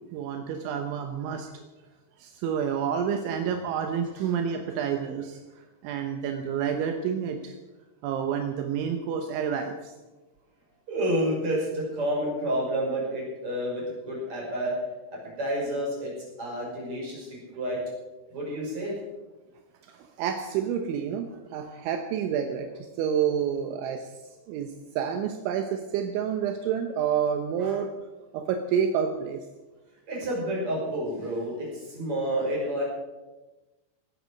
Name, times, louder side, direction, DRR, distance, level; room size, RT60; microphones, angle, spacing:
voice 1, 0.1-1.5 2.2-5.4 5.8-7.5 8.0-9.9 19.9-24.1 24.5-27.9 28.3-29.4, right 8 dB, 80° right, 5 dB, 3.3 m, -29 dB
voice 2, 10.9-14.8 15.1-17.9 18.3-19.0 27.6-27.7 30.1-32.8, right 1 dB, 30° right, -4 dB, 6.5 m, -30 dB
18.0 x 11.0 x 6.5 m, 1.1 s
omnidirectional pair, 5.4 m